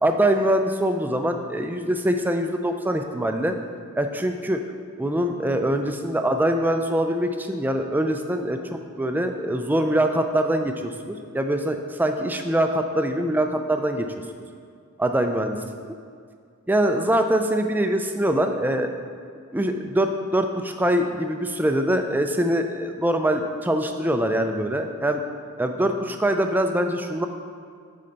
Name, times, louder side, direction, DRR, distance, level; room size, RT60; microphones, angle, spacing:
voice 1, 0.0-3.5 4.0-4.6 5.0-14.1 15.0-15.6 16.7-18.9 19.5-25.2 25.6-27.3, right 1 dB, 10° right, 6 dB, 0.3 m, -23 dB
8.6 x 4.4 x 3.9 m, 2.2 s
head